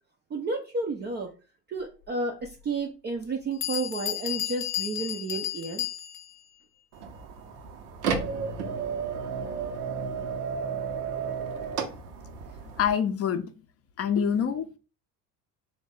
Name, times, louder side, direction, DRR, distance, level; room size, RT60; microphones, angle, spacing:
voice 1, 0.3-1.3 1.7-5.9, right 3 dB, 25° right, 2 dB, 0.4 m, -32 dB
Bell, 2.4-2.5 3.2-3.3 3.6-6.4, left 13 dB, 80° left, 0.7 m, -33 dB
sound 1, 6.9-12.9, right 6 dB, 75° right, 0.7 m, -33 dB
voice 2, 12.8-13.5 14.0-14.8, left 7 dB, 30° left, 9 dB, 0.5 m, -26 dB
3.2 x 2.1 x 3.7 m, 0.34 s
hypercardioid pair, 65°, 48 cm